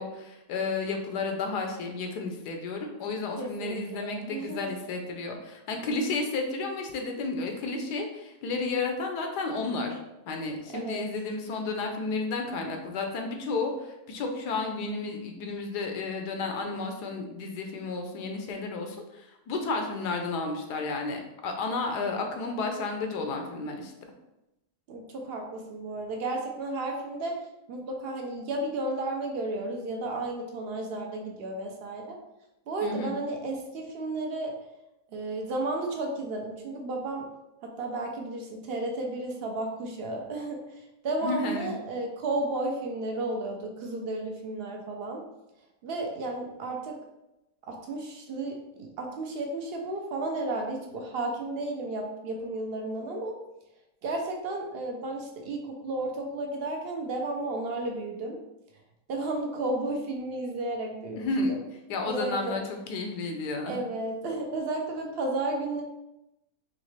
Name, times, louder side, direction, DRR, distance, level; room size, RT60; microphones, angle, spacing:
voice 1, 0.0-10.0 10.3-23.9 32.8-33.1 41.2-41.7 61.2-61.5 61.9-63.8, left 3 dB, 85° left, 3 dB, 1.3 m, -32 dB
voice 2, 3.4-4.6 10.7-11.1 24.9-27.4 27.7-32.2 32.7-34.5 35.1-37.3 37.6-45.2 45.8-47.0 47.7-53.4 54.0-58.4 59.1-61.6 62.1-62.6 63.7-65.8, right 2 dB, 60° right, 2 dB, 0.6 m, -33 dB
3.9 x 3.2 x 3.2 m, 0.92 s
omnidirectional pair, 1.7 m